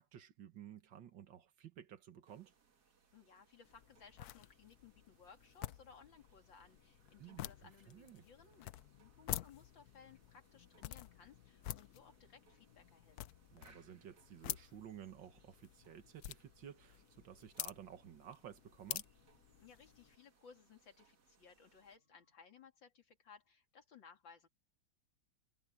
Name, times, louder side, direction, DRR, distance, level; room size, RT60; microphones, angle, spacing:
voice 1, 0.0-2.5 7.2-8.3 13.5-19.1, right 9 dB, 80° right, 2.1 m, -54 dB
sound 1, 2.2-22.0, right 5 dB, 60° right, 2.4 m, -73 dB
voice 2, 3.1-13.2 19.6-24.5, left 6 dB, 85° left, 3.2 m, -61 dB
sound 2, 3.6-20.2, left 14 dB, 70° left, 1.0 m, -49 dB
sound 3, 7.0-22.4, equal, 25° left, 8.1 m, -85 dB
omnidirectional pair, 2.0 m